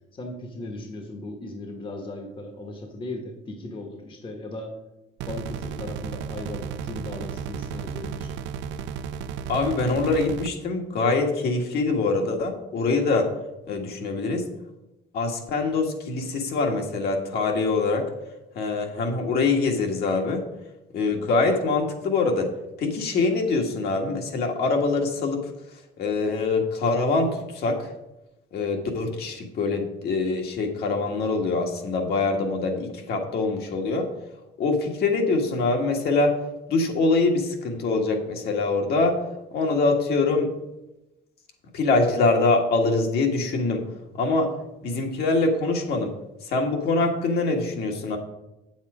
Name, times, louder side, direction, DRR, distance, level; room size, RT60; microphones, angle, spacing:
voice 1, 0.1-4.8 5.3-8.3, left 2 dB, 30° left, 3 dB, 1.1 m, -37 dB
sound 1, 5.2-10.5, right 7 dB, 90° right, 0.5 m, -34 dB
voice 2, 9.5-13.3 13.7-14.5 15.1-18.1 18.5-20.4 20.9-22.5 22.8-25.5 26.0-27.9 28.5-34.1 34.6-36.3 36.7-39.2 39.5-40.5 41.7-43.8 44.1-44.5 44.8-46.2 46.4-48.2, left 3 dB, 60° left, 2 dB, 1.6 m, -24 dB
8.3 x 7.4 x 4.9 m, 0.94 s
cardioid pair, 155°, 18 cm